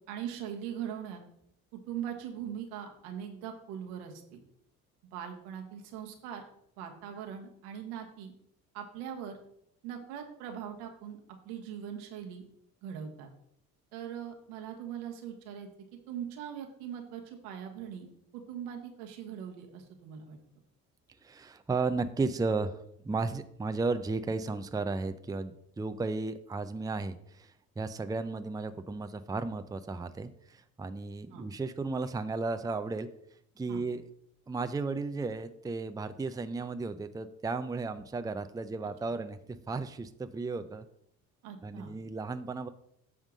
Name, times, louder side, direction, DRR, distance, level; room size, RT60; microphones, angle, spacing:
voice 1, 0.1-1.2 1.7-4.4 5.1-6.4 6.8-8.3 8.7-9.4 9.8-11.2 11.4-12.4 12.8-13.3 13.9-15.7 16.1-18.1 18.3-20.4 31.3-31.4 33.7-33.8 41.4-41.9, right 9 dB, 80° right, 3 dB, 1.5 m, -41 dB
voice 2, 21.2-33.1 33.6-34.0 34.5-39.4 39.7-40.9 41.6-42.7, right 3 dB, 10° right, 10 dB, 0.6 m, -34 dB
9.0 x 3.6 x 6.3 m, 0.72 s
hypercardioid pair, 55°, 44 cm